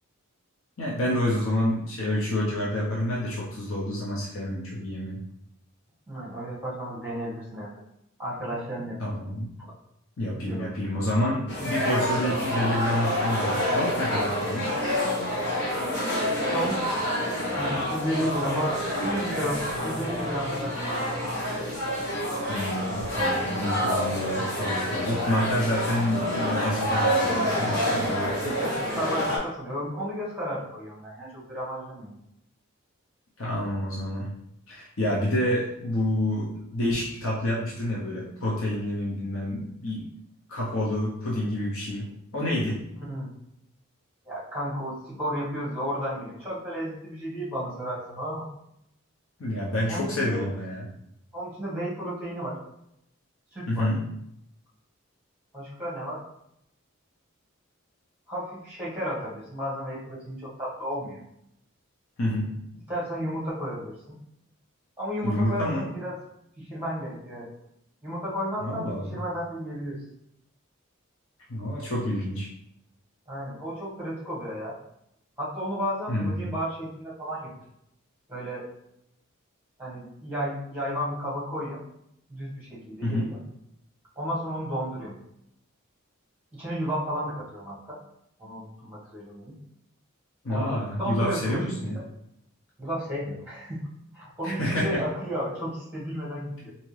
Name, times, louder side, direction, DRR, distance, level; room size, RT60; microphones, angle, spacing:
voice 1, 0.8-5.2 9.0-9.5 10.2-14.7 22.5-28.6 33.4-34.3 34.7-40.0 40.5-42.8 49.4-50.9 53.7-54.0 62.2-62.5 65.2-65.9 68.6-69.2 71.5-72.5 76.1-76.5 83.0-83.3 90.4-92.0 94.4-95.0, left 1 dB, 70° left, -4 dB, 0.7 m, -28 dB
voice 2, 6.1-7.7 8.2-9.0 10.3-10.7 16.5-17.1 17.6-21.4 28.6-32.1 43.0-43.3 44.2-48.5 49.9-50.4 51.3-52.6 53.5-53.9 55.5-56.2 58.3-61.2 62.9-64.2 65.0-66.1 66.6-67.5 68.0-70.0 73.3-74.7 75.4-77.5 78.3-78.7 79.8-81.8 82.3-83.4 84.1-85.2 86.5-88.0 88.4-89.5 90.5-92.0 92.8-93.8 94.1-96.7, equal, 10° right, -6 dB, 1.3 m, -33 dB
sound 1, 11.5-29.4, equal, 55° left, 1.2 m, -28 dB
3.6 x 2.8 x 3.2 m, 0.78 s
head